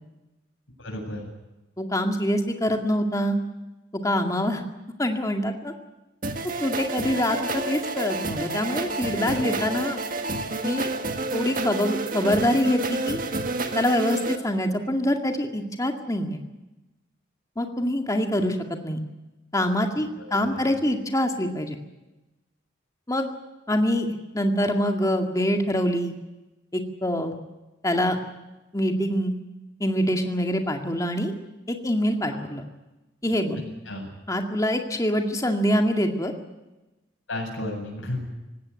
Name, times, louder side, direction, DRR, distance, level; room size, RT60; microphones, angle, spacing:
voice 1, 0.8-1.2 9.2-9.6 20.2-20.7 32.3-32.5 33.5-34.1 37.3-38.2, left 1 dB, 85° left, 1 dB, 7.8 m, -34 dB
voice 2, 1.8-3.4 3.9-4.6 5.0-5.7 6.6-10.0 10.6-10.9 11.3-13.2 13.7-16.4 17.6-19.0 19.5-21.8 23.1-23.3 23.7-26.1 26.7-27.4 27.8-28.2 28.7-29.3 29.8-31.3 31.7-32.6 33.2-33.6 34.3-36.3, equal, 15° left, 4 dB, 2.1 m, -25 dB
sound 1, 6.2-14.4, right 2 dB, 45° right, 1.8 m, -29 dB
19.0 x 16.5 x 9.8 m, 1.0 s
head